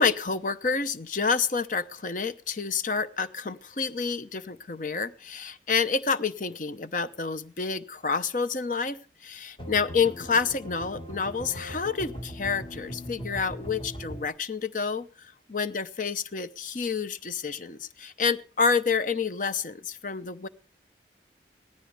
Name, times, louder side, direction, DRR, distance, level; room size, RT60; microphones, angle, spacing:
voice 1, 0.0-9.0 9.2-20.5, left 5 dB, 45° left, 13 dB, 0.8 m, -28 dB
sound 1, 9.6-14.3, equal, 30° left, 1.8 m, -40 dB
17.5 x 14.0 x 3.4 m, 0.38 s
head